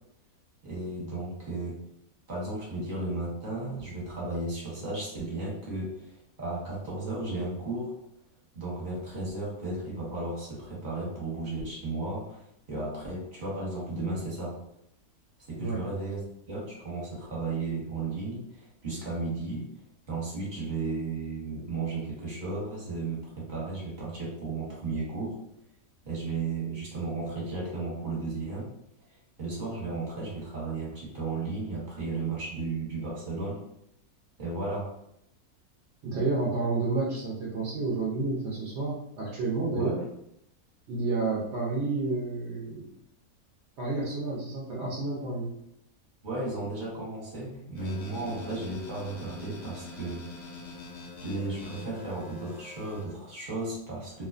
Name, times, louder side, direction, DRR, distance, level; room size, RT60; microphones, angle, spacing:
voice 1, 0.6-1.8 2.3-7.9 8.5-14.6 15.5-16.2 16.5-19.7 20.1-25.4 26.0-28.7 29.4-33.6 34.4-34.9 39.7-39.9 46.2-50.6 51.2-54.3, right 3 dB, 35° right, -6 dB, 0.9 m, -34 dB
voice 2, 36.0-40.0 40.9-42.9 43.8-45.5, right 3 dB, 65° right, -5 dB, 0.7 m, -30 dB
sound 1, 47.8-53.1, left 3 dB, 65° left, 0.8 m, -45 dB
2.4 x 2.2 x 2.3 m, 0.75 s
omnidirectional pair, 1.6 m